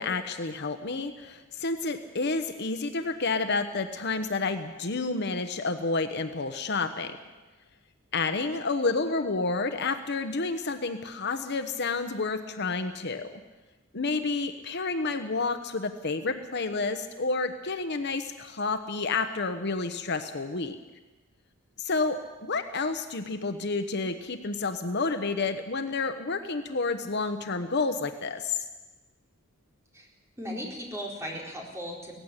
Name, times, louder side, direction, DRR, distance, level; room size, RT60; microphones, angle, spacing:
voice 1, 0.0-7.1 8.1-13.4 13.9-20.8 21.8-28.6, left 3 dB, 55° left, 8 dB, 1.1 m, -30 dB
voice 2, 30.4-32.2, equal, 15° right, -2 dB, 4.5 m, -37 dB
17.5 x 15.5 x 10.0 m, 1.2 s
head